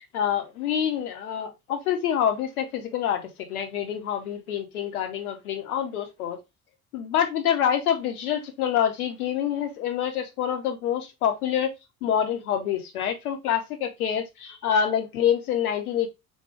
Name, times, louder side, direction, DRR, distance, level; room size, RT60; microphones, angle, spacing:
voice 1, 0.1-6.4 6.9-11.7 12.0-16.1, left 9 dB, 80° left, 0.8 m, -26 dB
3.6 x 2.3 x 4.4 m
figure-of-eight pair, 50°, 44 cm